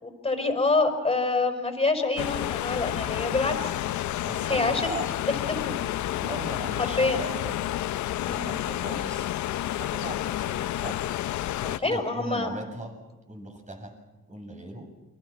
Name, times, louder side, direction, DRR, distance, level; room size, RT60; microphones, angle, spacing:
voice 1, 0.0-3.7 4.5-4.9 5.3-5.8 7.0-7.3 8.2-8.5 11.8-12.5, left 3 dB, 20° left, 5 dB, 5.4 m, -26 dB
sound 1, 2.2-11.8, left 13 dB, 75° left, 0.7 m, -30 dB
voice 2, 4.3-5.1 6.2-7.5 8.3-9.3 9.8-11.0 11.6-12.9 13.3-13.9 14.3-14.9, right 1 dB, 25° right, 3 dB, 7.9 m, -38 dB
29.0 x 23.5 x 6.1 m, 1.1 s
cardioid pair, 90°, 30 cm